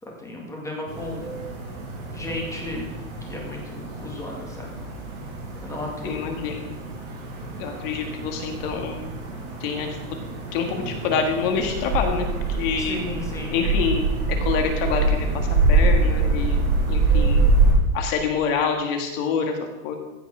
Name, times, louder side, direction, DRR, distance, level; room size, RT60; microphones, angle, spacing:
voice 1, 0.0-1.3 2.1-2.9 3.2-4.8 5.6-6.2 12.8-13.5, left 2 dB, 5° left, 0 dB, 1.9 m, -34 dB
sound 1, 0.9-17.7, right 3 dB, 45° right, 4.9 m, -25 dB
voice 2, 6.0-6.7 7.6-9.1 9.6-10.0 10.5-13.0 13.5-14.0 14.4-16.6 16.9-17.4 17.9-19.6 19.8-19.9, left 6 dB, 40° left, 4 dB, 1.7 m, -26 dB
15.5 x 5.7 x 6.0 m, 1.1 s
supercardioid pair, 165°, 42 cm